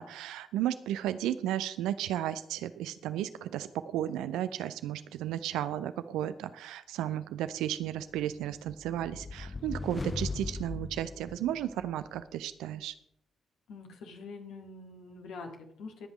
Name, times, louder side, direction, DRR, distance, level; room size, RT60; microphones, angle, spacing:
voice 1, 0.0-12.9, right 12 dB, 65° right, 13 dB, 0.6 m, -34 dB
sound 1, 8.2-12.0, left 3 dB, 30° left, 0.4 m, -39 dB
voice 2, 13.7-16.1, left 4 dB, 65° left, 2 dB, 2.0 m, -45 dB
21.0 x 7.9 x 3.1 m, 0.74 s
figure-of-eight pair, 40°, 0 cm